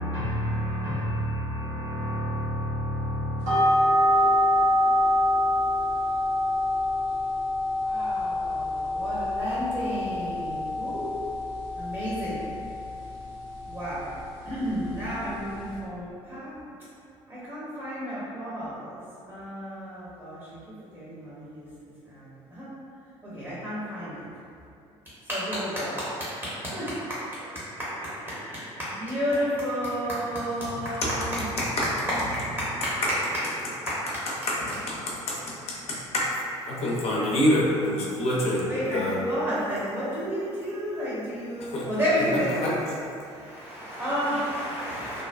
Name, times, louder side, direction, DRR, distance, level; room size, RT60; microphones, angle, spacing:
voice 1, 0.0-3.8, equal, 90° right, 1.0 m, -30 dB
sound 1, 3.4-15.8, left 1 dB, 65° right, 0.8 m, -26 dB
voice 2, 7.8-11.1 11.8-12.4 13.7-14.0 14.4-16.6 17.5-19.0 19.3-20.4 20.9-21.6 22.1-22.2 22.5-22.7 23.2-24.1 25.3-26.0 26.7-26.8 27.4-27.5 27.9-31.0 38.7-42.8 43.4-45.2, equal, 15° right, 0.8 m, -31 dB
voice 3, 30.7-31.1 31.8-31.9 33.0-33.1 34.5-36.3 36.7-39.2 41.6-41.9 42.2-43.0 43.3-43.4 44.4-44.5, left 1 dB, 40° left, 0.5 m, -27 dB
2.6 x 2.1 x 2.2 m
figure-of-eight pair, 55°, 16 cm